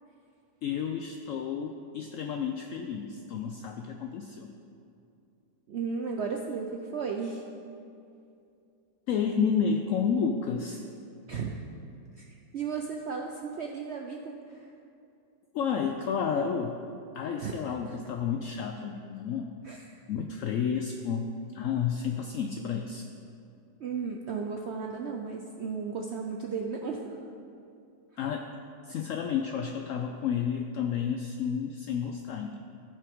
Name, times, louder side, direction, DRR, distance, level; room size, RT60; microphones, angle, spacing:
voice 1, 0.6-4.5 9.1-10.8 15.5-16.8 17.1-19.6 20.1-23.1 28.2-28.5 28.8-32.6, left 7 dB, 75° left, 4 dB, 0.7 m, -31 dB
voice 2, 5.7-7.4 11.3-11.5 12.2-12.3 12.5-14.7 17.4-17.6 17.9-18.0 19.6-20.0 23.8-27.2, right 5 dB, 80° right, 1 dB, 0.6 m, -35 dB
16.0 x 5.7 x 3.6 m, 2.6 s
omnidirectional pair, 1.9 m